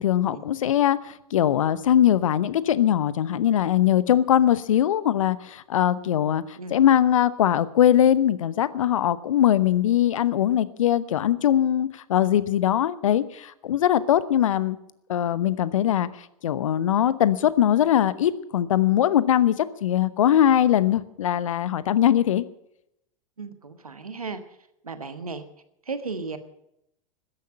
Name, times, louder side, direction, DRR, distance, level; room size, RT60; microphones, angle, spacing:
voice 1, 0.0-6.4 6.7-14.8 15.1-16.1 16.4-22.4, left 10 dB, 65° left, 17 dB, 0.9 m, -21 dB
voice 2, 23.4-24.4 24.8-25.4 25.9-26.4, right 4 dB, 80° right, 10 dB, 1.4 m, -34 dB
13.5 x 10.5 x 8.7 m, 0.79 s
figure-of-eight pair, 90°, 18 cm